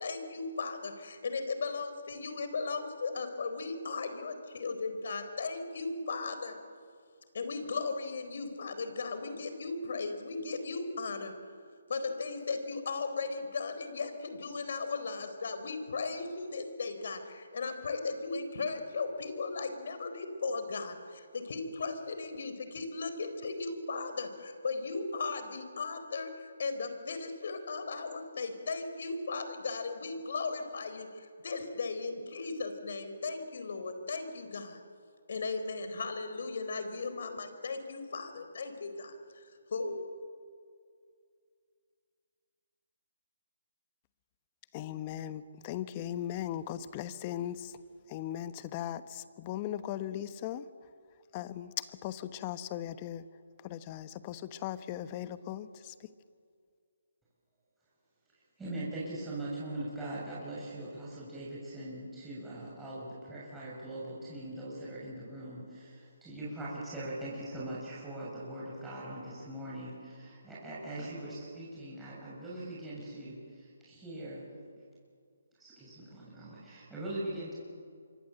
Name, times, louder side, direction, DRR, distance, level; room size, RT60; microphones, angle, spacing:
voice 1, 0.0-6.6 7.3-11.3 11.9-34.8 35.3-40.0, left 4 dB, 60° left, 4.2 m, -37 dB
voice 2, 44.7-47.8 48.1-50.6 51.3-53.3 53.6-55.9, left 11 dB, 30° left, 1.1 m, -38 dB
voice 3, 58.6-74.4 75.6-77.5, right 1 dB, 5° right, 6.9 m, -41 dB
26.5 x 24.0 x 7.9 m
figure-of-eight pair, 150°, 0 cm